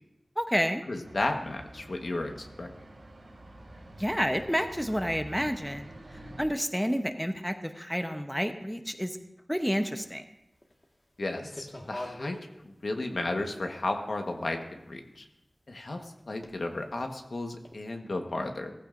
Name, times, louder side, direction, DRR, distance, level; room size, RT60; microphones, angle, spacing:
voice 1, 0.4-0.8 4.0-9.2 9.5-10.2, equal, ahead, 7 dB, 0.8 m, -30 dB
voice 2, 0.9-2.7 11.2-12.4 12.6-15.2 15.7-18.7, left 2 dB, 70° left, 4 dB, 1.2 m, -34 dB
sound 1, 1.0-6.4, right 1 dB, 70° right, 3.6 m, -47 dB
sound 2, 10.0-10.1 10.6-10.8 11.3-12.4 13.1-13.2 14.2-14.3 16.4-16.6 17.0-17.1 17.6-17.7, left 1 dB, 35° left, 1.6 m, -41 dB
17.0 x 14.5 x 2.6 m, 0.87 s
wide cardioid pair, 75°, 0 cm